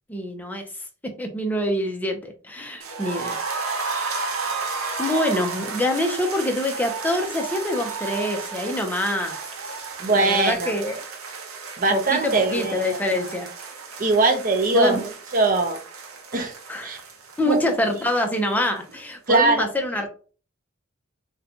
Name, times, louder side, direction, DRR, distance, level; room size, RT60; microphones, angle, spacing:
voice 1, 0.1-0.7 1.0-3.4 4.0-9.4 10.1-11.0 11.9-13.5 14.7-15.0 16.7-17.0 17.4-20.1, left 1 dB, 10° left, 3 dB, 0.5 m, -26 dB
sound 1, 2.8-18.7 18.9-19.0 19.3-19.4, right 4 dB, 80° right, 0.7 m, -33 dB
voice 2, 10.0-10.7 11.8-13.0 14.0-15.8 16.3-16.5 16.8-17.0 17.5-17.6 19.3-19.7, right 3 dB, 40° right, 6 dB, 0.6 m, -21 dB
3.9 x 2.2 x 2.8 m, 0.39 s
head